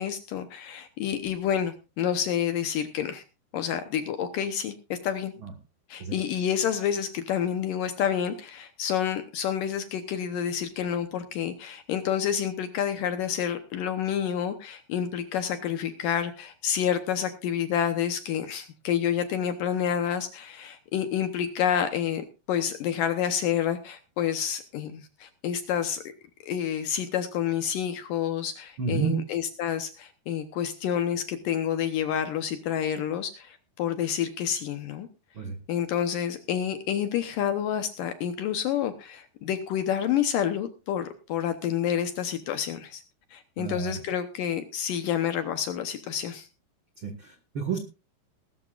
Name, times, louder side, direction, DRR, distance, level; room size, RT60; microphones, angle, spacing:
voice 1, 0.0-3.2 3.5-5.3 5.9-26.0 26.4-35.1 35.7-43.0 43.3-46.5, left 9 dB, 70° left, 9 dB, 2.2 m, -29 dB
voice 2, 28.8-29.2 35.3-35.6 43.6-44.0 47.0-47.8, right 5 dB, 65° right, 5 dB, 1.2 m, -30 dB
20.0 x 12.5 x 2.5 m, 0.30 s
omnidirectional pair, 4.8 m